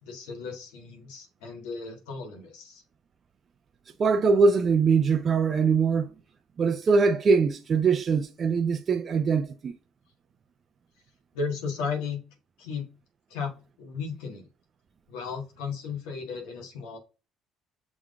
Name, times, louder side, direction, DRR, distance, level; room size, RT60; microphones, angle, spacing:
voice 1, 0.0-2.8 11.3-12.2 12.6-12.9 13.3-13.5 13.8-14.5 15.1-17.0, left 5 dB, 85° left, 1.6 m, -35 dB
voice 2, 4.0-6.1 6.6-9.7, right 5 dB, 45° right, 0.6 m, -22 dB
6.1 x 3.6 x 2.4 m
supercardioid pair, 70°, 0 cm